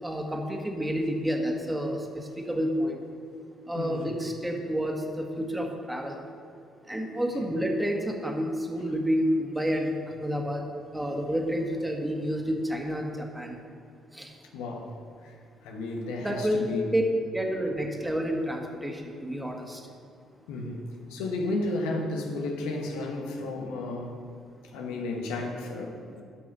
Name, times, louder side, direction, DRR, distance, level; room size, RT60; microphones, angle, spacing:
voice 1, 0.0-3.0 3.7-6.2 6.9-10.6 10.9-13.6 14.1-14.3 16.2-16.7 16.9-17.0 17.3-19.8, equal, 10° right, 1 dB, 1.7 m, -29 dB
voice 2, 3.7-4.1 7.4-7.5 14.5-15.0 15.2-15.3 15.6-16.9 20.5-20.8 21.1-24.2 24.7-26.2, left 2 dB, 90° left, 2 dB, 1.1 m, -33 dB
9.9 x 6.0 x 5.5 m, 2.4 s
supercardioid pair, 65°, 0 cm